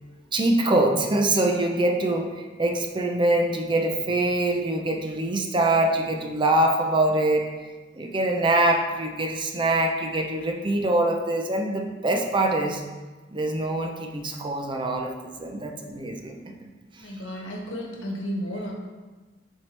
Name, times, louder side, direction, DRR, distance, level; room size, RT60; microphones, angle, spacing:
voice 1, 0.3-7.5 7.9-12.8 13.3-16.7 17.2-17.3, right 1 dB, 25° right, 3 dB, 0.6 m, -24 dB
voice 2, 17.0-18.7, equal, 85° left, 0 dB, 1.2 m, -33 dB
7.0 x 4.6 x 3.3 m, 1.3 s
head